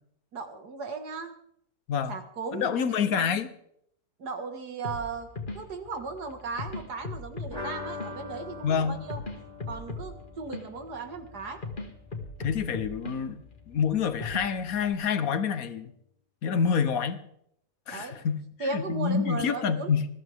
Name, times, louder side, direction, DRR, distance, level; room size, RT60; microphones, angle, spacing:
voice 1, 0.3-1.3 2.1-3.2 4.2-5.3 5.5-9.2 9.7-11.6 16.7-16.8 17.9-18.2 18.6-19.9, right 4 dB, 90° right, 5 dB, 2.4 m, -36 dB
voice 2, 2.5-3.5 8.6-9.1 12.4-15.9 16.4-17.2 17.9-20.1, left 6 dB, 65° left, 12 dB, 1.5 m, -27 dB
sound 1, 4.8-14.9, left 3 dB, 30° left, 1.9 m, -40 dB
sound 2, 7.5-13.1 13.4-13.5 13.8-13.9, left 3 dB, 45° right, 4.7 m, -43 dB
21.0 x 14.0 x 3.6 m, 0.72 s
omnidirectional pair, 1.7 m